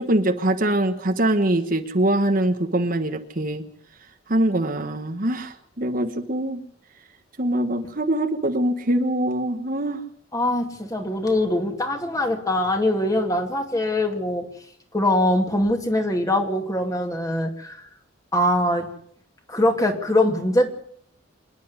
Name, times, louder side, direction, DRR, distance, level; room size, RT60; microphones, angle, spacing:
voice 1, 0.0-3.6 4.3-6.6 7.4-10.0, right 1 dB, 45° right, 7 dB, 1.4 m, -23 dB
voice 2, 10.3-14.4 14.9-17.9 18.3-18.9 19.5-20.7, left 1 dB, 20° left, 4 dB, 2.5 m, -22 dB
26.5 x 10.5 x 9.6 m, 0.66 s
head